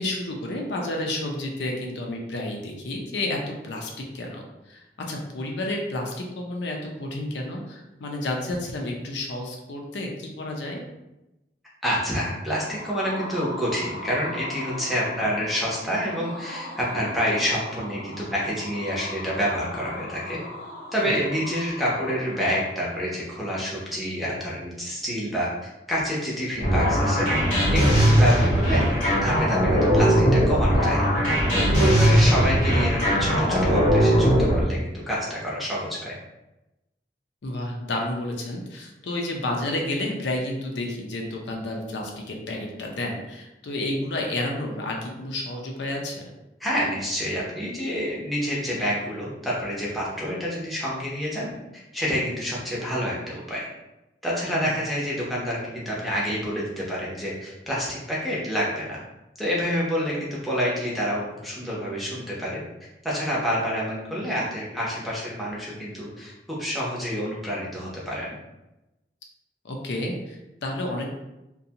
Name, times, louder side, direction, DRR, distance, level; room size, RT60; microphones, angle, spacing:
voice 1, 0.0-10.8 21.0-21.2 30.0-30.1 37.4-46.2 54.5-54.7 69.6-71.1, left 1 dB, 80° left, 0 dB, 0.5 m, -31 dB
voice 2, 11.8-20.4 20.9-25.5 25.9-27.3 27.7-28.8 29.2-31.0 31.2-36.1 46.6-51.5 51.9-53.7 54.2-59.0 59.4-62.6 63.0-68.4, equal, ahead, -6 dB, 0.6 m, -28 dB
sound 1, 12.4-23.3, left 1 dB, 75° right, 0.8 m, -39 dB
sound 2, 26.6-34.6, equal, 45° left, 0.9 m, -19 dB
2.5 x 2.2 x 2.8 m, 0.96 s
head